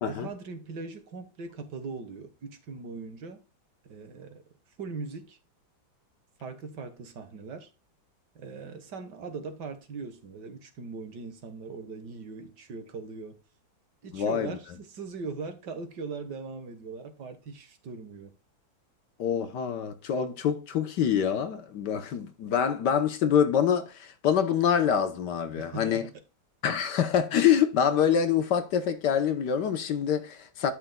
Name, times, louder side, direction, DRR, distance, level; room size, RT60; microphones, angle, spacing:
voice 1, 0.0-3.4 3.8-4.4 4.8-5.4 6.4-7.7 8.3-13.4 14.0-18.4 25.6-26.1, right 4 dB, 60° right, 1.7 m, -40 dB
voice 2, 14.1-14.6 19.2-26.1 26.6-30.7, left 8 dB, 65° left, 1.4 m, -26 dB
11.5 x 6.3 x 2.2 m
omnidirectional pair, 2.1 m